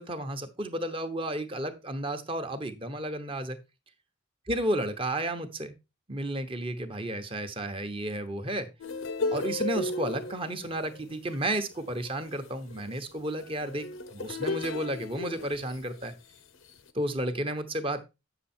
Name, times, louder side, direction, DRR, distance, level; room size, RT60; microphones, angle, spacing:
voice 1, 0.0-3.6 4.5-5.8 6.1-8.7 9.3-16.1 16.9-18.0, right 1 dB, 25° right, 7 dB, 0.9 m, -32 dB
sound 1, 8.8-16.1 16.7-16.9, left 3 dB, 70° left, 0.9 m, -35 dB
8.5 x 6.9 x 4.3 m, 0.27 s
head